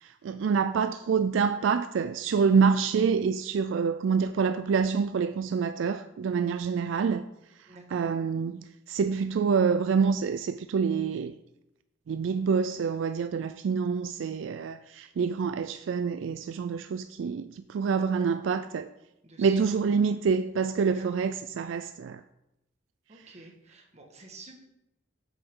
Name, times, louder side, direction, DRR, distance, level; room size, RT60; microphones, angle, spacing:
voice 1, 0.0-7.2 7.9-11.3 12.1-18.9 19.4-22.2, right 5 dB, 75° right, 0.3 m, -27 dB
voice 2, 7.7-8.1 19.2-20.0 20.8-21.3 23.1-24.6, right 3 dB, 35° right, 1.6 m, -50 dB
7.9 x 7.9 x 3.7 m
head